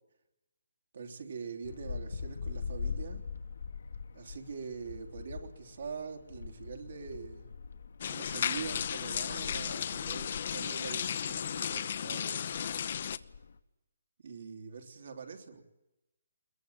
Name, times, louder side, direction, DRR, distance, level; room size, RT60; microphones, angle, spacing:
voice 1, 0.9-3.2 4.1-7.5 8.1-12.7 14.2-15.6, right 5 dB, 65° right, 5 dB, 3.4 m, -44 dB
sound 1, 1.6-13.6, left 5 dB, 70° left, 1.5 m, -43 dB
sound 2, 8.0-13.2, left 8 dB, 50° left, 0.9 m, -34 dB
22.0 x 21.5 x 9.0 m, 0.95 s
hypercardioid pair, 160°, 0 cm